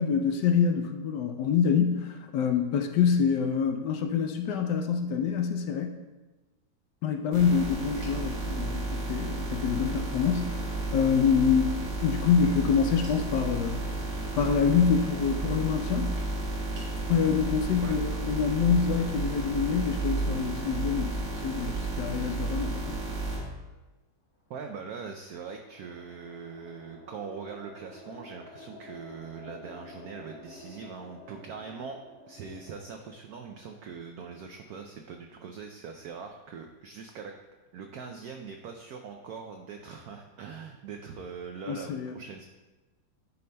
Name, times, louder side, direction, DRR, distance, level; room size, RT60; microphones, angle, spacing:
voice 1, 0.0-5.9 7.0-13.9 14.3-16.1 17.1-21.2 21.4-23.0 41.7-42.1, left 6 dB, 75° left, 5 dB, 1.1 m, -26 dB
sound 1, 7.3-23.4, right 2 dB, 65° right, 2.0 m, -32 dB
sound 2, 24.5-34.9, left 1 dB, 40° left, 1.3 m, -51 dB
voice 2, 24.5-32.0 32.3-37.3 37.7-42.5, right 5 dB, 85° right, 4 dB, 0.8 m, -42 dB
10.5 x 5.3 x 2.2 m, 1.2 s
omnidirectional pair, 2.1 m